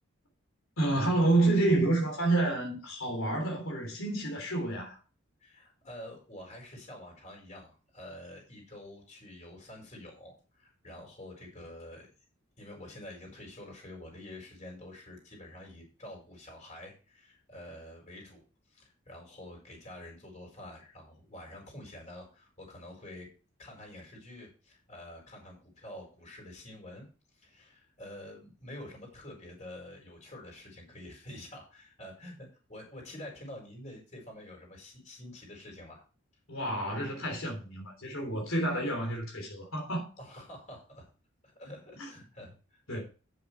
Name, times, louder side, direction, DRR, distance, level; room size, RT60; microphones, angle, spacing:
voice 1, 0.8-5.0 36.5-40.1 42.0-42.1 42.9-43.0, right 2 dB, 90° left, 3.4 m, -29 dB
voice 2, 5.4-12.1 12.6-23.3 23.6-27.0 27.3-36.0 40.2-41.1 41.4-43.0, left 1 dB, 35° left, 4.7 m, -48 dB
9.2 x 7.6 x 4.5 m
head